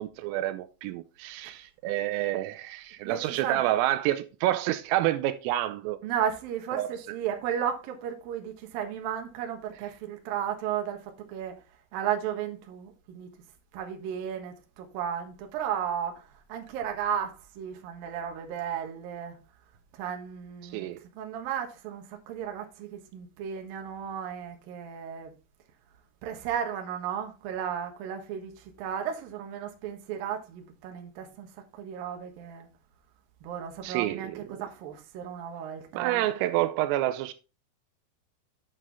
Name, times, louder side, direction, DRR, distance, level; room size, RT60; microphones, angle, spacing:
voice 1, 0.0-6.0 6.8-6.9 20.6-21.0 33.8-34.6 35.9-37.3, right 14 dB, 85° right, 3.2 m, -28 dB
voice 2, 3.0-3.6 6.0-11.5 11.9-13.3 13.7-19.4 19.9-25.3 26.2-31.5 31.7-32.7 33.4-36.3, right 9 dB, 65° right, 2.5 m, -34 dB
8.9 x 7.5 x 3.5 m
omnidirectional pair, 5.9 m